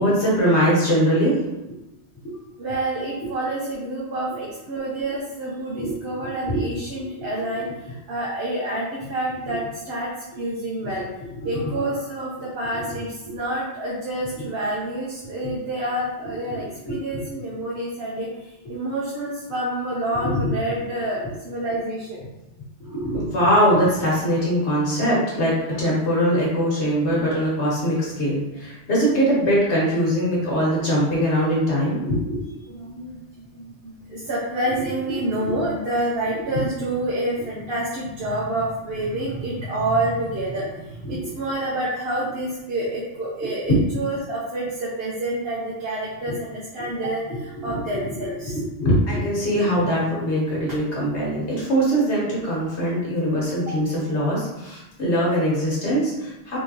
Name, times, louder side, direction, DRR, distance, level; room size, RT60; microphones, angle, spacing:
voice 1, 0.0-1.3 2.2-2.3 5.8-6.0 6.5-6.6 7.0-7.2 9.5-9.6 11.4-11.7 12.7-12.8 14.4-14.5 16.4-17.0 20.2-20.5 22.8-32.6 35.3-35.6 36.5-36.6 41.0-41.3 43.7-43.9 47.6-47.7 48.4-56.6, equal, 65° left, -6 dB, 1.6 m, -22 dB
voice 2, 2.6-10.1 10.4-11.1 11.4-22.2 25.8-25.9 26.8-27.4 32.7-33.2 33.5-48.6 53.7-53.8, right 1 dB, 60° right, -5 dB, 0.9 m, -28 dB
3.6 x 3.4 x 2.8 m, 0.97 s
omnidirectional pair, 1.2 m